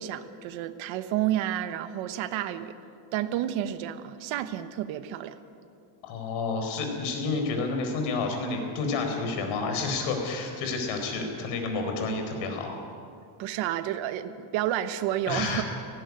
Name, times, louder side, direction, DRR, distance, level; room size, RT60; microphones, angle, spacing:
voice 1, 0.0-2.7 3.1-5.4 13.4-15.6, right 12 dB, 75° right, 10 dB, 1.2 m, -30 dB
voice 2, 6.0-12.7 15.2-15.6, left 3 dB, 80° left, 4 dB, 4.5 m, -30 dB
18.0 x 15.5 x 9.7 m, 2.6 s
cardioid pair, 170°, 47 cm